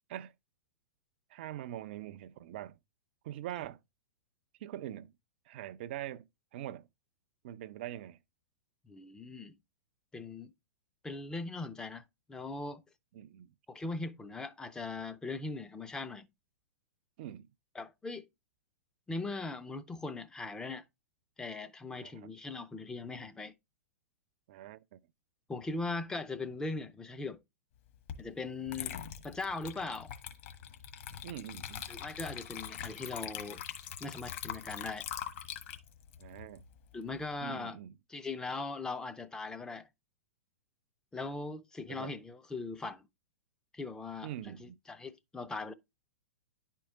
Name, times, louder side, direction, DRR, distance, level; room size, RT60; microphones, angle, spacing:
voice 1, 1.3-2.8 3.2-3.8 4.6-5.1 5.5-6.3 6.5-6.9 7.4-8.2 13.1-13.5 17.2-17.5 22.0-22.1 24.5-25.0 31.2-31.9 36.2-36.7 37.4-37.9 41.9-42.1 44.2-44.8, right 12 dB, 40° right, 0.4 m, -43 dB
voice 2, 8.9-9.5 10.1-10.5 11.0-12.0 12.3-12.8 13.7-16.3 17.7-18.3 19.1-20.8 21.4-23.5 25.5-27.4 28.2-30.1 31.9-33.6 34.0-35.1 36.9-37.8 38.1-39.9 41.1-43.0 43.7-45.7, left 3 dB, 10° left, 0.6 m, -40 dB
Water / Liquid, 28.1-28.2 28.7-37.2, left 9 dB, 45° left, 1.3 m, -43 dB
10.5 x 4.5 x 3.6 m
figure-of-eight pair, 105°, 8 cm